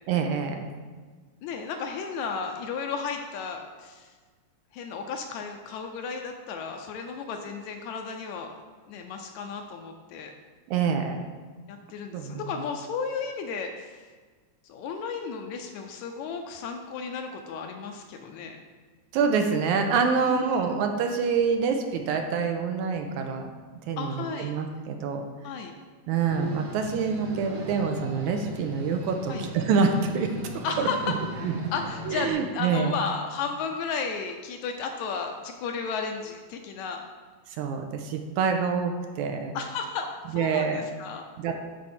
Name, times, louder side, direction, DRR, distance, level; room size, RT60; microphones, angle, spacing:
voice 1, 0.1-0.7 10.7-11.3 12.1-12.5 19.1-23.5 23.9-25.2 26.1-30.3 30.8-30.9 31.4-31.5 32.1-33.0 37.6-39.6 40.3-40.8 41.4-41.5, right 6 dB, 80° right, 4 dB, 2.0 m, -26 dB
voice 2, 1.4-4.1 4.7-8.6 8.9-10.3 11.7-14.1 14.6-18.6 20.2-20.7 24.0-24.5 25.4-25.7 29.3-29.5 30.6-31.2 31.7-37.0 39.5-41.2, left 5 dB, 80° left, 4 dB, 1.8 m, -34 dB
sound 1, 26.3-32.3, left 1 dB, 55° right, 1.4 m, -37 dB
9.5 x 4.6 x 4.3 m, 1.5 s
omnidirectional pair, 3.6 m